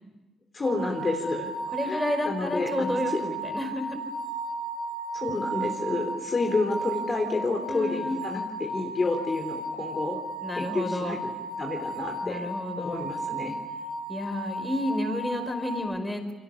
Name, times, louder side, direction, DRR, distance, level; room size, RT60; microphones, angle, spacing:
voice 1, 0.5-1.5 1.8-3.2 5.1-10.2 10.5-11.2 11.6-12.5 12.8-13.5, left 3 dB, 30° left, 2 dB, 3.4 m, -30 dB
sound 1, 0.6-15.8, right 2 dB, 65° right, 7.3 m, -34 dB
voice 2, 1.7-4.0 7.7-8.2 10.4-11.2 12.2-13.1 14.1-16.3, left 1 dB, 10° left, 6 dB, 4.9 m, -31 dB
29.0 x 23.5 x 7.1 m, 1.1 s
cardioid pair, 90°, 0 cm